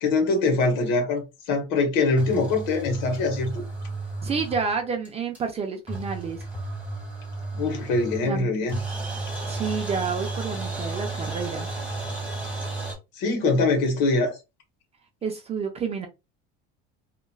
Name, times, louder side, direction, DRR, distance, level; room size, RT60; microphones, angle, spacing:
voice 1, 0.0-3.6 7.5-8.8 13.2-14.4, left 3 dB, 75° left, 1.2 m, -23 dB
sound 1, 2.2-4.8 5.0-5.1 5.3-5.4 5.9-8.4 8.7-12.9, right 2 dB, 5° right, 1.1 m, -33 dB
voice 2, 4.2-6.5 8.2-8.6 9.5-11.7 15.2-16.1, right 5 dB, 20° right, 0.4 m, -29 dB
2.9 x 2.4 x 2.3 m
cardioid pair, 145°, 30 cm